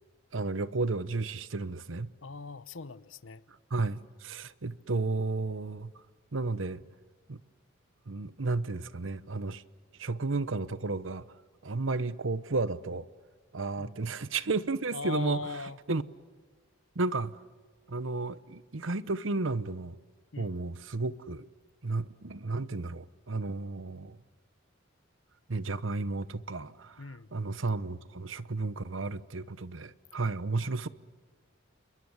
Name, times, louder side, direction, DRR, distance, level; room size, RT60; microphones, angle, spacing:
voice 1, 0.3-2.1 3.7-5.9 6.3-6.8 7.3-7.4 8.1-9.6 10.0-11.3 11.6-13.0 13.5-15.4 15.9-16.0 16.9-17.4 17.9-20.0 20.4-21.5 21.8-24.2 25.5-27.0 27.3-30.9, right 3 dB, 80° right, 1.0 m, -32 dB
voice 2, 2.2-3.4 13.8-13.9 14.9-15.8 20.3-20.5 27.0-27.3 30.6-30.7, left 4 dB, 90° left, 0.9 m, -40 dB
28.0 x 23.0 x 8.1 m
head